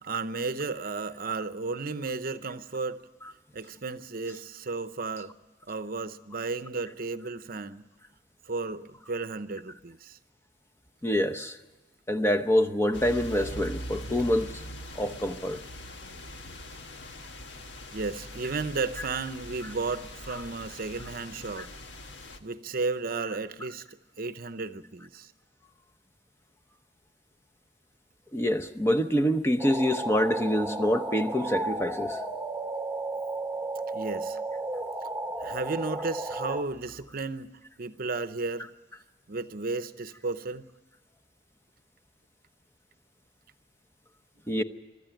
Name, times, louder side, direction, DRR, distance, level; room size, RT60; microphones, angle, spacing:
voice 1, 0.0-3.0 3.5-5.3 5.7-7.8 8.5-10.2 17.9-21.7 22.4-23.8 24.2-25.3 33.9-34.4 35.4-37.5 37.8-38.7 39.3-40.6, right 3 dB, 50° right, 0.8 m, -33 dB
voice 2, 11.0-11.6 12.1-14.5 14.9-15.6 21.6-21.7 28.3-32.2 44.5-44.6, equal, 15° left, 0.8 m, -26 dB
sound 1, 12.9-22.4, left 1 dB, 70° left, 1.6 m, -42 dB
sound 2, 29.6-36.6, right 2 dB, 5° right, 1.3 m, -33 dB
24.0 x 13.5 x 9.2 m
head